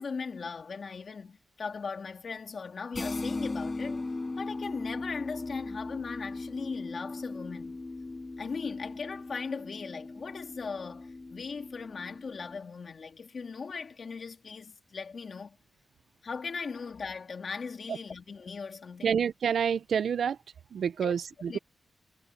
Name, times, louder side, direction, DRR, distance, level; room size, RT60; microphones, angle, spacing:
voice 1, 0.0-4.0 4.4-7.8 8.4-15.6 16.2-19.2 21.0-21.1 21.5-21.6, left 5 dB, 50° left, 2.8 m, -38 dB
sound 1, 2.9-12.6, left 3 dB, 25° left, 7.2 m, -38 dB
voice 2, 19.0-20.4 20.7-21.6, right 7 dB, 70° right, 0.5 m, -28 dB
wide cardioid pair, 130°, 0 cm